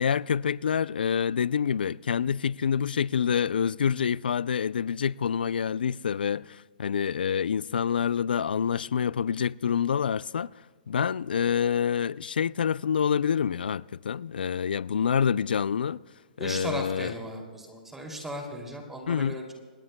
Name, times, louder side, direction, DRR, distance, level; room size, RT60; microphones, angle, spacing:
voice 1, 0.0-10.5 10.9-16.0 16.4-17.1 19.1-19.4, left 7 dB, 85° left, 0.4 m, -27 dB
voice 2, 16.4-19.5, right 1 dB, 5° right, 2.7 m, -36 dB
27.0 x 19.0 x 2.2 m
hypercardioid pair, 155°, 5 cm